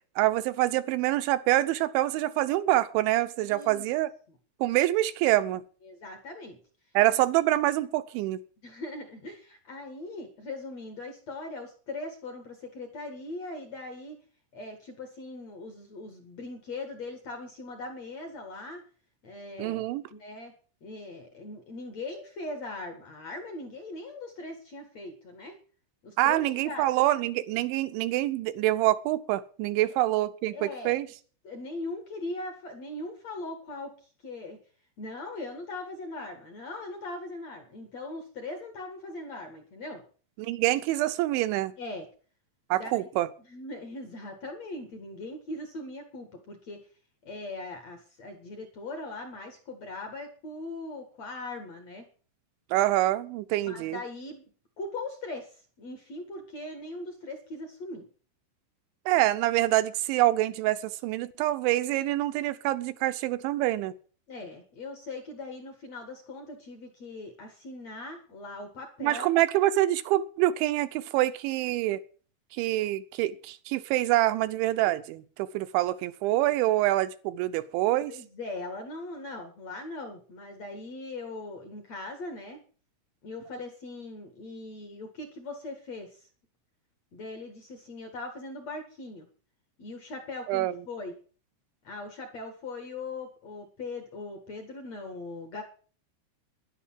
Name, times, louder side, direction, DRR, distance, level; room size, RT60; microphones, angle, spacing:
voice 1, 0.2-4.1 4.6-5.6 6.9-8.4 19.6-20.0 26.2-31.1 40.4-41.7 42.7-43.3 52.7-54.0 59.1-63.9 69.0-72.0 72.6-78.1 90.5-90.7, right 15 dB, 80° right, 3.0 m, -26 dB
voice 2, 3.5-3.8 5.8-6.6 8.6-14.2 14.5-18.8 19.2-19.8 20.1-20.5 20.8-25.6 26.0-26.9 30.5-31.0 31.4-34.0 34.2-34.6 35.0-40.0 41.8-42.1 42.7-43.1 43.5-46.8 47.2-52.1 53.6-54.4 54.8-58.0 64.3-69.3 78.1-82.6 83.2-86.2 87.1-89.3 89.8-91.1 91.8-95.6, left 2 dB, 50° left, 2.2 m, -40 dB
11.0 x 11.0 x 7.4 m
omnidirectional pair, 5.4 m